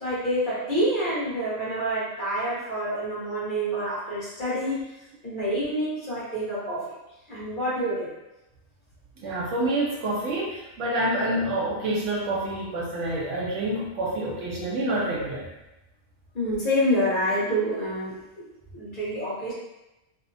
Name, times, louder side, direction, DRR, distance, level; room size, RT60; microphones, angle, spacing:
voice 1, 0.0-4.9 5.2-6.9 7.3-8.1 16.3-18.5 18.7-19.5, equal, 45° left, -8 dB, 1.0 m, -27 dB
voice 2, 9.2-15.5, right 1 dB, 75° right, -4 dB, 0.9 m, -27 dB
2.6 x 2.1 x 2.5 m, 0.95 s
omnidirectional pair, 1.3 m